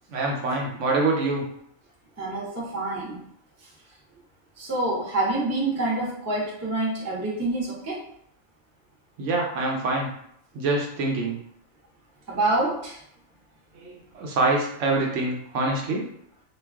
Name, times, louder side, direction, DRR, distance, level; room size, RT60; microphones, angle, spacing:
voice 1, 0.1-1.4 9.2-10.1 10.5-11.4 13.7-16.0, right 2 dB, 70° right, -1 dB, 0.9 m, -25 dB
voice 2, 2.2-3.2 4.6-8.0 12.3-13.0, right 2 dB, 15° right, -5 dB, 0.5 m, -27 dB
2.3 x 2.3 x 3.4 m, 0.71 s
omnidirectional pair, 1.4 m